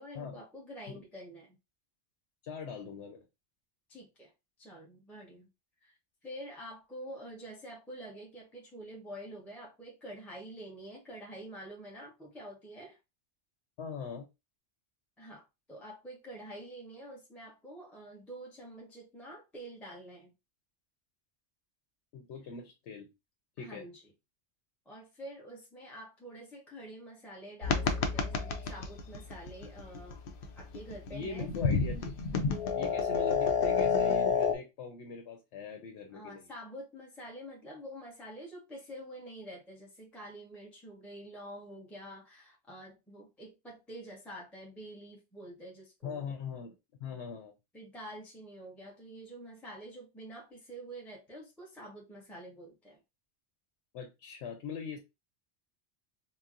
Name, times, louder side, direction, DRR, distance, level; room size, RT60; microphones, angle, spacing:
voice 1, 0.0-1.6 3.9-4.3 4.6-5.5 5.8-13.0 15.2-20.3 23.6-24.0 24.9-30.2 30.6-31.5 36.1-46.3 47.7-53.0, right 1 dB, ahead, 0.6 m, -47 dB
voice 2, 2.4-3.2 13.8-14.2 22.1-23.1 23.6-23.8 31.1-32.1 32.7-36.5 46.0-46.7 47.0-47.5 53.9-55.0, left 5 dB, 85° left, 0.9 m, -41 dB
sound 1, 27.6-34.5, left 5 dB, 60° left, 0.7 m, -31 dB
4.1 x 2.1 x 2.4 m
omnidirectional pair, 1.1 m